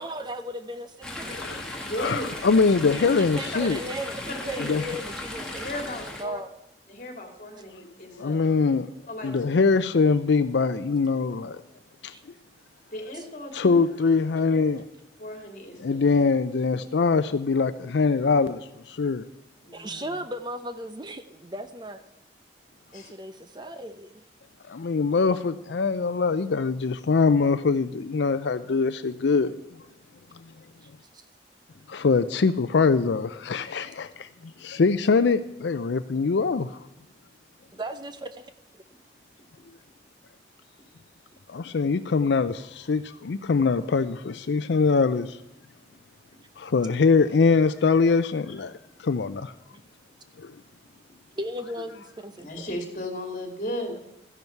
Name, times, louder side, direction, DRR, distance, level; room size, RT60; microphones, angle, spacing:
voice 1, 0.0-1.9 2.8-6.5 12.1-12.2 13.1-13.2 19.7-22.0 22.9-24.2 30.8-30.9 31.1-31.2 37.7-38.4 38.7-38.8 49.7-49.8 51.4-52.7, right 1 dB, 25° right, 10 dB, 0.6 m, -37 dB
Chatter / Stream, 1.0-6.2, left 1 dB, 5° left, 1.8 m, -36 dB
voice 2, 1.3-1.6 2.0-3.8 4.7-4.9 8.1-8.9 9.2-11.6 12.0-12.1 13.5-14.8 15.8-19.3 24.7-29.5 31.9-34.3 34.6-36.8 41.5-45.4 46.6-48.7 49.0-49.5 50.4-50.5, left 4 dB, 80° left, 11 dB, 0.5 m, -23 dB
voice 3, 1.8-2.3 4.5-4.7 5.6-6.4 6.9-8.4 9.1-9.3 12.9-13.8 15.2-16.0 19.6-20.2 22.9-23.1 52.4-54.0, left 1 dB, 45° left, 4 dB, 2.6 m, -35 dB
13.5 x 11.0 x 4.6 m, 0.90 s
head